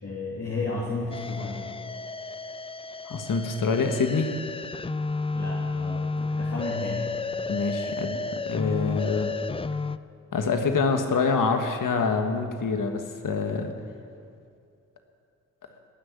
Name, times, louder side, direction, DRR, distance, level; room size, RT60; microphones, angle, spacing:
voice 1, 0.0-1.7 5.3-7.1, left 3 dB, 45° left, -3 dB, 2.8 m, -33 dB
sound 1, 1.1-10.0, left 3 dB, 15° left, 0.4 m, -32 dB
voice 2, 3.1-4.3 7.5-9.3 10.3-13.7, left 4 dB, 70° left, 5 dB, 1.5 m, -26 dB
19.5 x 6.5 x 9.6 m, 2.4 s
cardioid pair, 45°, 33 cm